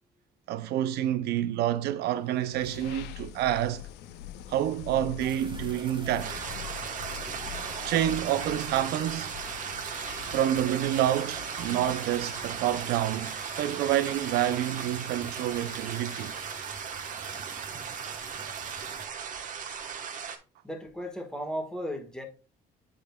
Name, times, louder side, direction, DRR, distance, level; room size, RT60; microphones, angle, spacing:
voice 1, 0.5-3.8 4.5-6.4 7.8-9.4 10.3-16.3, right 12 dB, 75° right, 0.5 m, -28 dB
sound 1, 2.0-16.6, left 12 dB, 85° left, 0.5 m, -45 dB
sound 2, 5.2-19.1, right 4 dB, 30° right, 0.9 m, -45 dB
sound 3, 6.2-20.4, right 7 dB, 50° right, 1.1 m, -37 dB
voice 2, 20.6-22.2, equal, 5° left, 1.4 m, -35 dB
8.6 x 5.1 x 2.2 m
cardioid pair, 110°, 17 cm